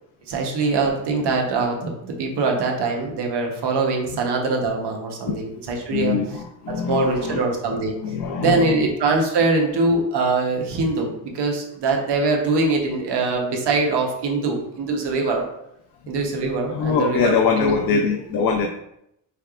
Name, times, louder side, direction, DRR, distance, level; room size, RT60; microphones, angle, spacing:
voice 1, 0.3-6.2 6.7-8.0 8.4-15.4 16.1-18.0, right 3 dB, 60° right, 1 dB, 0.9 m, -23 dB
voice 2, 5.5-7.4 8.0-8.9 16.7-18.7, left 5 dB, 50° left, 2 dB, 0.5 m, -23 dB
4.5 x 3.4 x 2.4 m, 0.78 s
cardioid pair, 110°, 46 cm